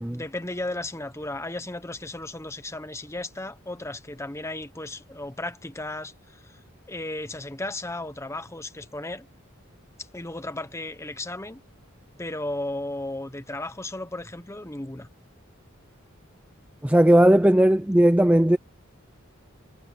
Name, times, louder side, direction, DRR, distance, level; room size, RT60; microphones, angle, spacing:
voice 1, 0.1-6.6 6.9-9.3 10.1-11.6 12.2-15.1, left 2 dB, 15° left, 1.1 m, -35 dB
voice 2, 16.8-18.6, right 1 dB, 5° right, 0.6 m, -17 dB
head